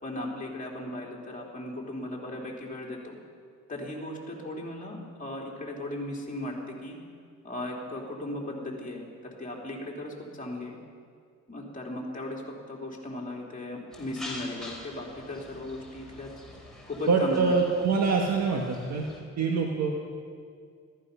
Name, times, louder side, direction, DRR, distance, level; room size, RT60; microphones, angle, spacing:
voice 1, 0.0-3.2 3.7-7.0 7.4-10.8 11.5-16.3 16.9-17.8, left 1 dB, 25° left, -2 dB, 3.5 m, -37 dB
sound 1, 13.9-19.2, left 1 dB, ahead, 3.6 m, -45 dB
voice 2, 17.1-19.0 19.4-19.9, right 4 dB, 60° right, 0 dB, 1.6 m, -25 dB
14.0 x 14.0 x 5.7 m, 2.1 s
cardioid pair, 90°, 30 cm